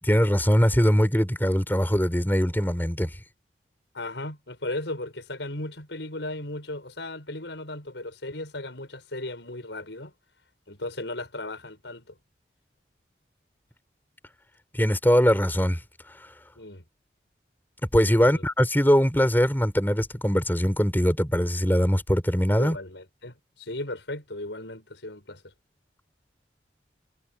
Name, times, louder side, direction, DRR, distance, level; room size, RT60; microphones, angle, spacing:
voice 1, 0.0-3.1 14.7-15.8 16.2-16.3 17.9-22.8, equal, 10° left, 4.2 m, -22 dB
voice 2, 3.9-10.1 10.7-12.1 16.6-16.8 18.2-18.4 22.6-25.4, left 2 dB, 85° left, 6.7 m, -36 dB
head